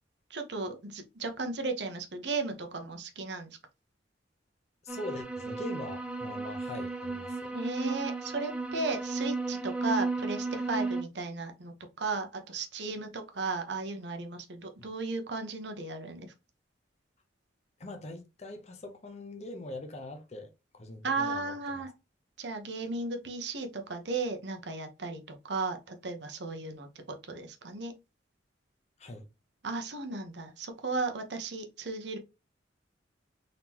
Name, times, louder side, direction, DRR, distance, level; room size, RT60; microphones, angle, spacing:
voice 1, 0.3-3.6 7.5-16.3 21.0-21.9 22.4-27.9 29.6-32.2, right 3 dB, 65° right, 1.0 m, -35 dB
voice 2, 4.8-7.5 17.8-21.5 29.0-29.3, left 1 dB, 35° left, 0.7 m, -42 dB
sound 1, 4.9-11.0, right 3 dB, 5° right, 0.7 m, -34 dB
3.9 x 3.7 x 2.9 m
head